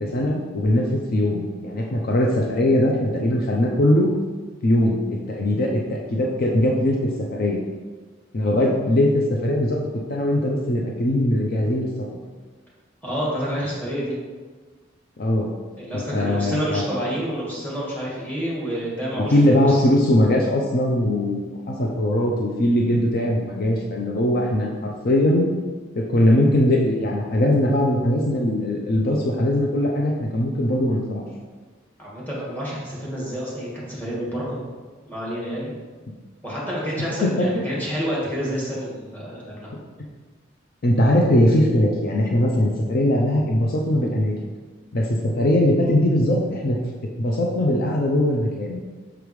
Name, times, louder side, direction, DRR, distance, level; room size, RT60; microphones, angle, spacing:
voice 1, 0.0-4.1 4.6-7.6 8.3-9.8 10.1-11.9 15.2-15.5 15.9-16.8 19.2-25.5 26.0-31.2 37.0-37.8 40.8-44.5 44.9-46.8 47.2-48.8, left 1 dB, 50° left, -1 dB, 0.6 m, -21 dB
voice 2, 13.0-14.2 15.8-19.8 32.0-34.6 35.1-35.7 36.4-39.7, equal, 10° left, -6 dB, 1.8 m, -28 dB
5.9 x 5.2 x 3.2 m, 1.4 s
head